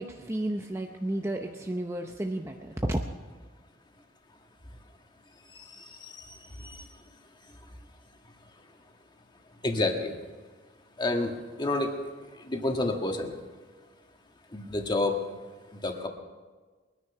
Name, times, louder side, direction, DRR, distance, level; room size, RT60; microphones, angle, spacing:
voice 1, 0.0-3.0, right 1 dB, 15° right, 3 dB, 0.7 m, -32 dB
voice 2, 5.7-6.8 9.6-10.2 11.0-11.3 11.6-12.0 12.4-13.3 14.5-15.2 15.8-16.1, left 2 dB, 25° left, 3 dB, 1.7 m, -29 dB
22.0 x 10.0 x 5.9 m, 1.4 s
head